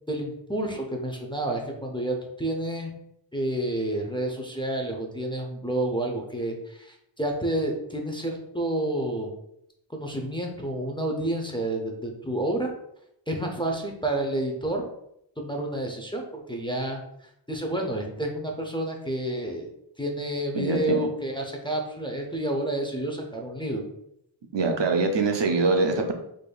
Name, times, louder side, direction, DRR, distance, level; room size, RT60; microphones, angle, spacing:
voice 1, 0.1-2.9 3.3-9.3 9.9-12.7 13.3-14.9 15.4-17.0 17.5-19.7 20.0-23.8, right 1 dB, 10° left, 1 dB, 0.5 m, -29 dB
voice 2, 20.5-21.1 24.5-26.1, right 3 dB, 60° right, 4 dB, 0.6 m, -24 dB
4.8 x 2.6 x 2.3 m, 0.77 s
wide cardioid pair, 55°, 49 cm